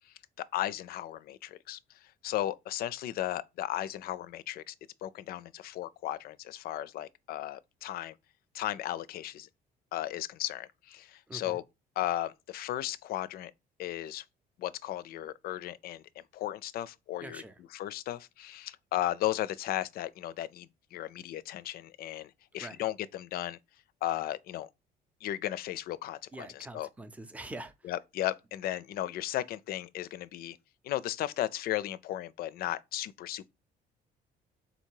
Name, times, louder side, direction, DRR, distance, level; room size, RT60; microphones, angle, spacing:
voice 1, 0.4-1.8 2.2-4.7 5.0-8.1 8.5-9.5 9.9-11.6 12.0-13.5 13.8-14.2 14.6-16.0 16.3-17.4 17.7-23.6 24.0-24.7 25.2-26.9 27.8-30.6 30.8-33.5, left 13 dB, 65° left, 0.4 m, -35 dB
voice 2, 11.3-11.6 17.2-17.6 22.6-22.8 26.3-27.9, right 2 dB, 10° right, 0.5 m, -44 dB
3.9 x 2.8 x 4.5 m
cardioid pair, 110°, 17 cm